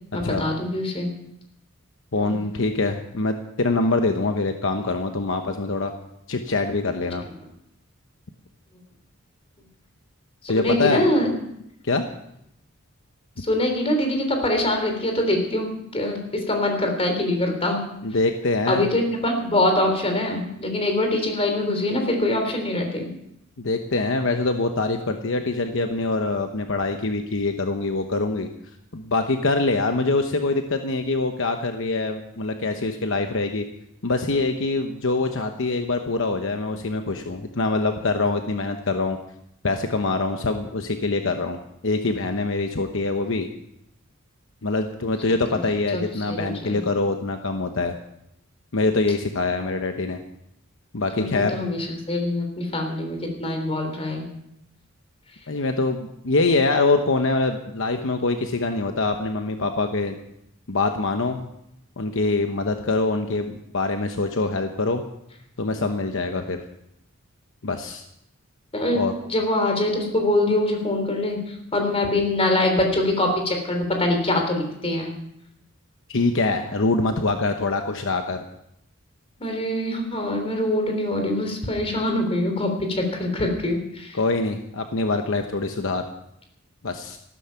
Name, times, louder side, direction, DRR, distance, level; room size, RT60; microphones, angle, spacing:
voice 1, 0.1-1.1 2.2-2.3 10.4-11.3 13.4-17.8 18.7-23.1 45.3-45.6 45.9-46.0 46.3-46.8 51.2-54.2 68.7-69.0 69.3-71.4 71.7-75.1 79.4-84.2, left 1 dB, 30° left, 4 dB, 3.4 m, -24 dB
voice 2, 2.1-5.9 6.3-7.3 10.5-11.0 11.8-12.0 18.0-18.9 23.6-28.5 28.9-33.6 34.0-39.2 39.6-43.5 44.6-47.9 48.7-50.2 50.9-51.6 55.5-60.1 60.7-61.5 62.0-65.0 65.6-66.6 67.6-68.0 68.9-69.1 76.1-78.4 84.1-86.0 86.8-87.2, left 3 dB, 65° left, 6 dB, 1.0 m, -24 dB
14.0 x 12.5 x 5.7 m, 0.79 s
head